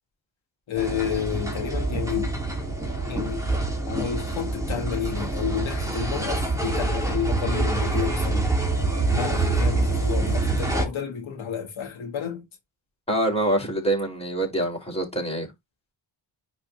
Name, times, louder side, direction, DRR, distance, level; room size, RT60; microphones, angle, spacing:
voice 1, 0.7-2.4 3.1-3.4 3.9-8.5 9.1-12.5, left 8 dB, 75° left, 1.8 m, -30 dB
sound 1, 0.8-10.9, right 2 dB, 5° right, 2.7 m, -26 dB
voice 2, 13.1-15.5, right 1 dB, 10° left, 4.1 m, -25 dB
10.5 x 4.1 x 2.7 m
cardioid pair, 90°, 47 cm